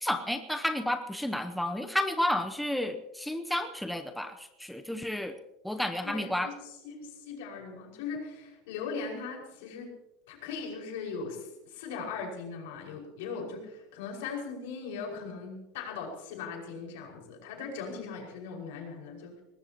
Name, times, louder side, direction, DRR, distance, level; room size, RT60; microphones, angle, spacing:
voice 1, 0.0-5.3 5.6-6.5, left 1 dB, ahead, 6 dB, 0.7 m, -31 dB
voice 2, 6.0-9.9 10.3-19.3, left 5 dB, 90° left, 0 dB, 5.5 m, -39 dB
22.0 x 19.5 x 3.0 m, 0.95 s
cardioid pair, 170°, 0 cm